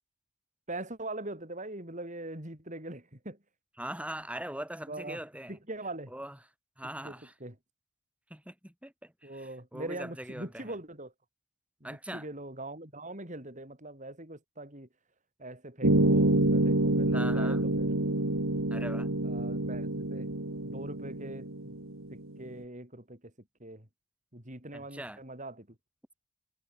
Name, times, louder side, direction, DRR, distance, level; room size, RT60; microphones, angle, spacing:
voice 1, 0.7-3.4 4.9-5.2 5.5-6.1 7.0-7.5 9.2-11.1 11.8-14.9 15.4-18.0 19.2-20.3 20.6-21.8 22.1-23.2 23.6-23.9 24.3-25.7, right 2 dB, 35° right, 6.3 m, -42 dB
voice 2, 3.8-5.6 6.1-6.4 6.8-7.3 8.3-10.8 11.8-12.3 17.1-17.6 18.7-19.1 24.7-25.2, right 1 dB, 5° right, 7.8 m, -41 dB
sound 1, 15.8-22.4, right 1 dB, 75° right, 2.6 m, -27 dB
head